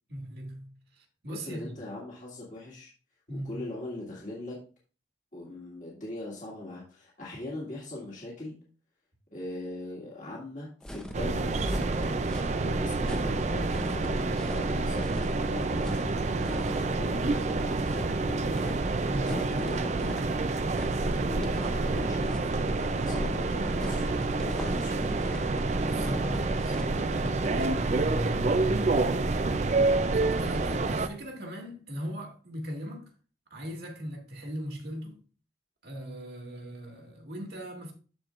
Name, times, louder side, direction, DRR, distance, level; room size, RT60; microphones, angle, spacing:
voice 1, 0.1-1.7 3.3-3.7 19.0-19.4 25.8-29.3 30.1-33.1 33.5-35.2 35.8-37.9, equal, 60° right, 1.9 m, -39 dB
voice 2, 1.3-2.9 3.3-4.6 5.3-8.6 9.3-12.0 12.6-16.0 16.3-18.6 19.3-20.3 21.0-24.0 24.4-25.1, left 2 dB, 45° left, 1.9 m, -40 dB
sound 1, 10.8-27.9, equal, 5° left, 0.7 m, -40 dB
sound 2, 11.1-31.1, right 3 dB, 40° right, 0.4 m, -28 dB
13.5 x 4.5 x 2.4 m
head